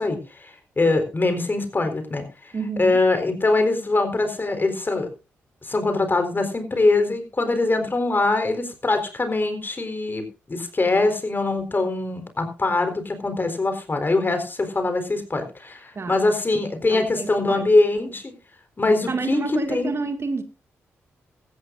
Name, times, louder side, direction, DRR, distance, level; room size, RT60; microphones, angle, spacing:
voice 1, 0.0-2.5 2.8-5.1 5.6-18.3 18.8-19.4 19.7-19.9, left 2 dB, 35° left, 4.0 m, -23 dB
voice 2, 2.5-3.0 15.9-16.2 16.9-17.8 19.1-20.4, right 4 dB, 45° right, 2.0 m, -29 dB
17.0 x 14.0 x 2.6 m
supercardioid pair, 45°, 6 cm